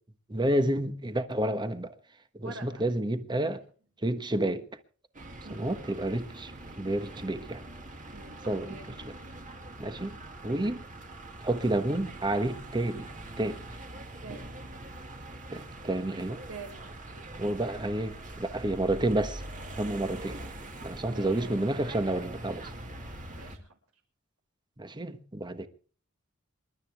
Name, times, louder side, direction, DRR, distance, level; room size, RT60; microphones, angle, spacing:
voice 1, 0.3-2.0 2.4-3.6 4.0-4.6 5.5-7.6 8.5-8.8 9.0-9.1 9.8-10.2 10.4-10.9 11.4-13.1 13.4-13.6 15.5-16.4 17.4-19.4 19.8-20.4 20.8-22.7 24.8-25.7, right 1 dB, 20° right, 1.2 m, -30 dB
voice 2, 2.4-2.9 3.4-3.6 5.4-5.8 8.1-8.8 14.2-14.5 16.5-17.1 21.0-21.5 23.2-23.7, right 4 dB, 80° right, 5.7 m, -46 dB
sound 1, 5.1-23.6, right 1 dB, 40° right, 2.2 m, -43 dB
27.5 x 12.5 x 3.5 m
head